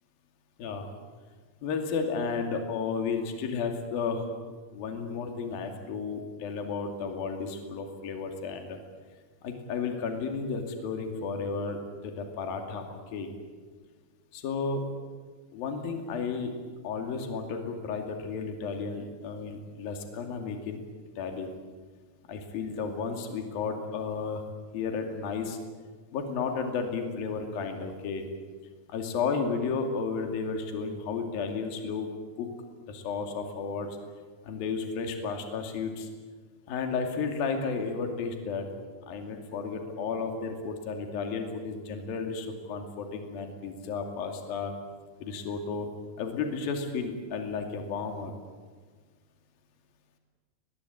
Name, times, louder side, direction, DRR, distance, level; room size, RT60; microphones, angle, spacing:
voice 1, 1.6-8.8 9.4-13.3 14.3-14.8 15.5-16.5 16.8-20.8 21.2-21.5 22.3-24.4 24.7-25.6 26.1-28.2 28.9-32.1 32.4-32.5 32.9-34.0 34.4-36.1 36.7-38.7 39.1-44.7 45.2-45.9 46.2-48.3, left 5 dB, 55° left, 4 dB, 4.0 m, -33 dB
23.0 x 21.0 x 8.6 m, 1.5 s
omnidirectional pair, 5.4 m